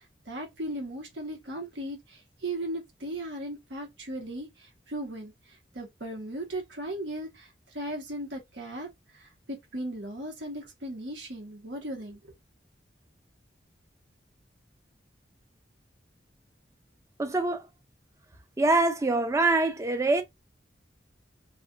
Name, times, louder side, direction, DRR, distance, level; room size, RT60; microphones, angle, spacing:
voice 1, 0.0-5.3 5.7-12.2, right 1 dB, 80° right, 1.1 m, -37 dB
voice 2, 17.2-17.6 18.6-20.2, right 2 dB, 15° right, 0.4 m, -24 dB
2.5 x 2.4 x 2.4 m
head